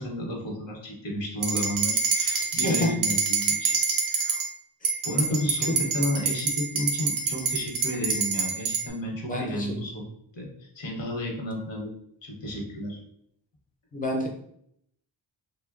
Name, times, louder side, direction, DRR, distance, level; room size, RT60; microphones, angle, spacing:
voice 1, 0.0-3.7 4.1-4.4 5.0-10.0 10.3-11.9 12.2-13.0, left 1 dB, 75° left, 0 dB, 0.9 m, -32 dB
sound 1, 1.4-4.5 4.8-8.8, right 5 dB, 45° right, 0.4 m, -26 dB
voice 2, 2.6-3.0 4.8-4.9 5.3-5.7 9.2-9.7 13.9-14.3, left 1 dB, 20° left, -1 dB, 0.4 m, -28 dB
3.0 x 2.1 x 2.3 m, 0.72 s
wide cardioid pair, 175°, 45 cm